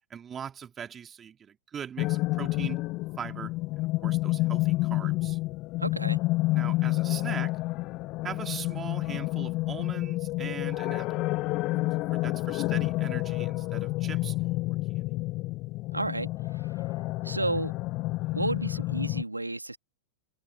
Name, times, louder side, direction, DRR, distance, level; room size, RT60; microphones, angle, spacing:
voice 1, 0.1-2.8 3.2-5.4 6.6-7.6 8.2-11.2 12.1-14.4 14.9-15.0, right 8 dB, 25° right, 3.7 m, -40 dB
sound 1, 2.0-19.2, left 20 dB, 40° left, 0.8 m, -29 dB
voice 2, 5.8-6.2 15.9-16.8 17.2-17.7 18.3-19.8, right 2 dB, 85° right, 2.5 m, -32 dB
figure-of-eight pair, 90°, 0 cm